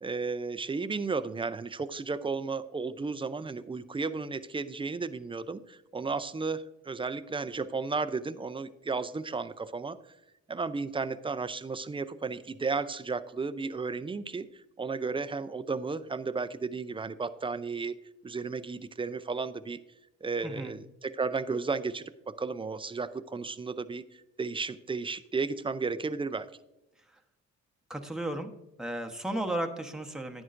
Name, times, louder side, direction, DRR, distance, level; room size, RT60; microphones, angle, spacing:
voice 1, 0.0-10.0 10.5-14.5 14.8-17.9 18.2-19.8 20.2-24.0 24.4-26.5, right 4 dB, 15° right, 12 dB, 0.5 m, -33 dB
voice 2, 27.9-28.5 28.8-30.4, right 1 dB, ahead, 3 dB, 1.0 m, -34 dB
11.0 x 9.5 x 2.5 m, 0.91 s
cardioid pair, 90°, 30 cm